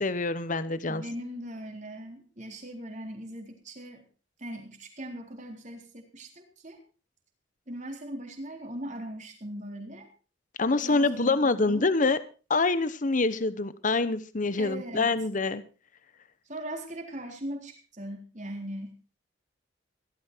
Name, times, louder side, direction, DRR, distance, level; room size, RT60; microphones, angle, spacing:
voice 1, 0.0-1.0 10.6-12.2 12.5-15.6, left 3 dB, 45° left, 14 dB, 1.0 m, -26 dB
voice 2, 0.8-4.1 4.4-6.8 7.7-10.1 10.8-11.9 14.5-15.1 16.5-18.9, right 1 dB, 40° right, 3 dB, 3.8 m, -40 dB
16.5 x 13.0 x 4.5 m, 0.35 s
head